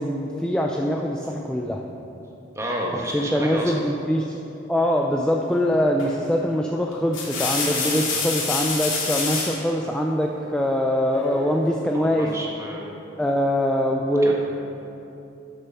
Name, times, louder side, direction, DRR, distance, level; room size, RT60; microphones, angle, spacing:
voice 1, 0.0-1.8 3.1-4.3 4.7-12.3 13.2-14.3, equal, 5° left, 0 dB, 0.4 m, -23 dB
voice 2, 2.5-3.9 11.9-13.0 14.2-14.3, equal, 15° right, -2 dB, 1.4 m, -31 dB
sound 1, 6.0-6.3 6.9-9.6 11.1-11.7, left 4 dB, 85° left, 2.3 m, -27 dB
11.5 x 6.8 x 5.5 m, 2.9 s
head